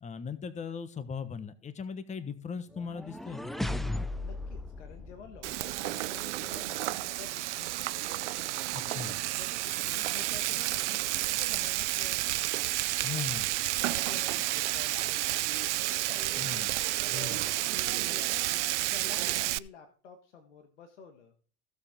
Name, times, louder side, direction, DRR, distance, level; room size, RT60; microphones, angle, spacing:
voice 1, 0.0-4.0 8.7-9.1 13.0-13.5 16.4-16.8 17.1-17.5, left 6 dB, 20° left, 12 dB, 1.1 m, -39 dB
sound 1, 2.7-5.9, left 1 dB, ahead, 0.5 m, -36 dB
voice 2, 4.2-8.0 9.4-12.5 12.7-13.3 13.8-16.7 17.5-18.6 18.9-21.3, left 5 dB, 90° left, 6 dB, 1.5 m, -50 dB
Frying (food), 5.4-19.6, right 16 dB, 80° right, 0.5 m, -31 dB
16.0 x 6.9 x 3.6 m, 0.42 s
hypercardioid pair, 95°, 35 cm